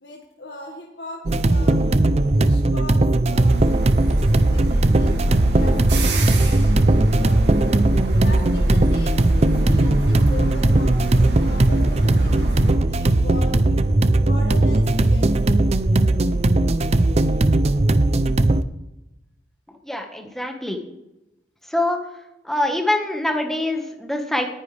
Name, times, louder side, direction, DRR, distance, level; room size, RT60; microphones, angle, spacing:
voice 1, 0.0-1.8 2.1-3.6 3.9-5.2 5.6-6.8 7.2-7.5 8.2-13.6 14.0-15.6, left 2 dB, 70° left, -1 dB, 1.9 m, -39 dB
sound 1, 1.3-18.6, right 2 dB, 40° right, 0.6 m, -18 dB
sound 2, 3.5-12.8, right 1 dB, 85° right, 2.4 m, -25 dB
voice 2, 19.8-20.9 21.7-22.0 22.4-24.5, left 1 dB, ahead, 3 dB, 1.5 m, -24 dB
18.5 x 10.0 x 3.4 m, 0.94 s
head